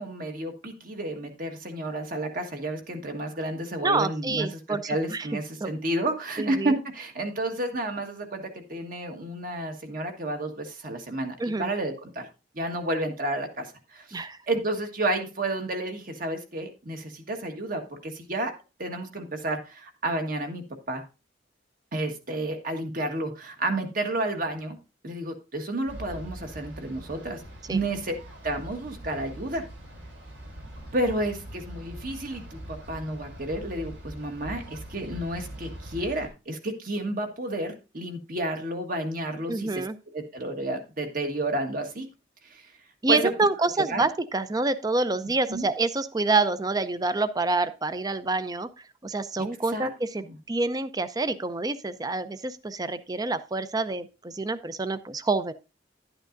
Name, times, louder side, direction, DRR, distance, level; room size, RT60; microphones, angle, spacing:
voice 1, 0.0-8.4 8.7-12.3 12.5-18.5 18.8-21.0 21.9-24.8 25.0-27.4 27.7-28.1 28.4-29.6 30.9-39.9 40.1-42.1 42.4-42.7 43.1-43.3 43.9-44.1 45.5-45.7 49.4-49.5 49.7-49.9 50.2-50.4, right 1 dB, 50° right, 5 dB, 1.5 m, -31 dB
voice 2, 3.8-5.3 5.6-5.7 6.4-6.7 11.4-11.7 14.1-14.4 27.7-27.8 39.5-40.0 43.0-48.7 49.0-55.5, right 3 dB, 20° right, 13 dB, 0.5 m, -27 dB
sound 1, 25.9-36.3, right 1 dB, 75° right, 3.7 m, -42 dB
11.5 x 8.8 x 2.6 m, 0.29 s
head